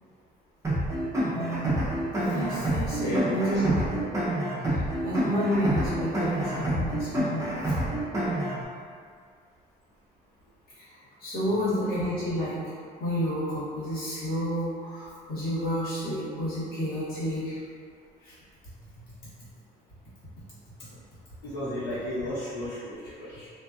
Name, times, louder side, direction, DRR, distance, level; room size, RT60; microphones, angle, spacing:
sound 1, 0.6-8.6, right 1 dB, 15° right, 0.6 m, -28 dB
voice 1, 1.3-1.8 2.1-3.8 4.7-7.7 10.8-17.6 18.2-18.3, equal, 65° left, -11 dB, 1.4 m, -30 dB
voice 2, 3.0-3.8 21.5-23.5, left 1 dB, 90° left, -12 dB, 1.1 m, -34 dB
2.5 x 2.3 x 2.4 m, 2.1 s
cardioid pair, 110°, 17 cm